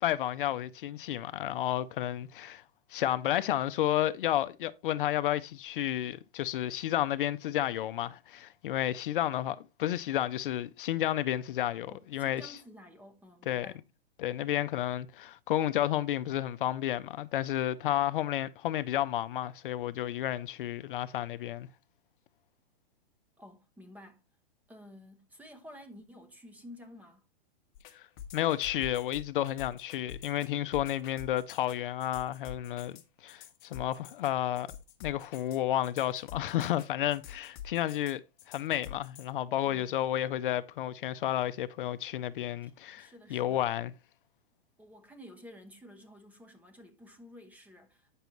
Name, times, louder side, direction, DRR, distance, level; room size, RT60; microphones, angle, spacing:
voice 1, 0.0-2.6 2.9-12.6 13.5-13.7 14.2-21.7 27.9-28.1 28.3-34.7 35.0-38.2 38.5-43.9, left 12 dB, 55° left, 0.5 m, -31 dB
voice 2, 11.9-13.8 23.4-24.2 24.7-27.3 39.6-39.9 42.6-43.6 44.8-48.2, left 1 dB, 5° right, 0.9 m, -52 dB
sound 1, 27.7-39.3, left 9 dB, 35° left, 1.2 m, -47 dB
9.2 x 6.8 x 3.0 m
hypercardioid pair, 155°, 32 cm